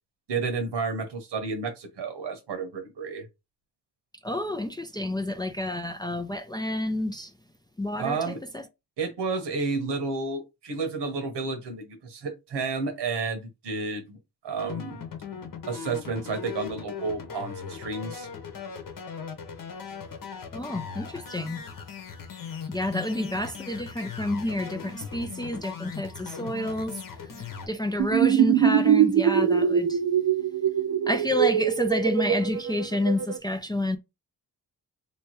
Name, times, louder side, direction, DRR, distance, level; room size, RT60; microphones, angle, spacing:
voice 1, 0.3-3.2 8.0-8.4 9.0-14.2 14.4-15.0 15.7-18.3, right 4 dB, 85° right, 1.2 m, -31 dB
voice 2, 4.2-7.3 7.8-8.6 20.5-21.6 22.7-30.0 31.1-34.0, left 1 dB, 10° left, 0.3 m, -29 dB
sound 1, 14.6-27.7, left 6 dB, 55° left, 1.0 m, -39 dB
sound 2, 28.0-33.4, right 9 dB, 60° right, 0.6 m, -22 dB
3.4 x 3.0 x 3.0 m
cardioid pair, 105°, 40 cm